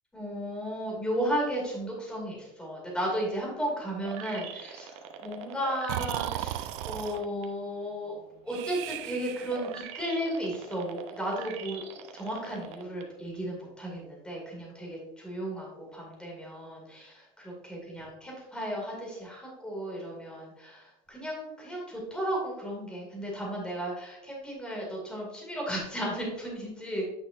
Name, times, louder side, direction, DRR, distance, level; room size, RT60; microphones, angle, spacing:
voice 1, 0.1-8.2 8.4-11.8 12.1-27.0, equal, 5° left, -2 dB, 2.3 m, -34 dB
sound 1, 4.0-7.5 7.9-13.0 13.5-13.6, right 7 dB, 45° right, 0.8 m, -43 dB
Breathing, 5.9-7.2 8.5-9.7, right 14 dB, 85° right, 0.4 m, -35 dB
9.1 x 5.8 x 2.5 m, 0.89 s
cardioid pair, 155°, 15 cm